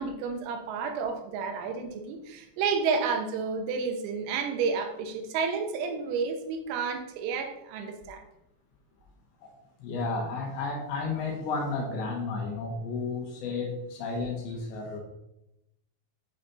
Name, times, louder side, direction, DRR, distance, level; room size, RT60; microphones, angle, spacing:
voice 1, 0.0-8.2, right 5 dB, 85° right, 5 dB, 3.6 m, -31 dB
voice 2, 9.8-15.0, left 3 dB, 70° left, 0 dB, 3.2 m, -32 dB
9.1 x 5.2 x 4.1 m, 0.88 s
omnidirectional pair, 6.0 m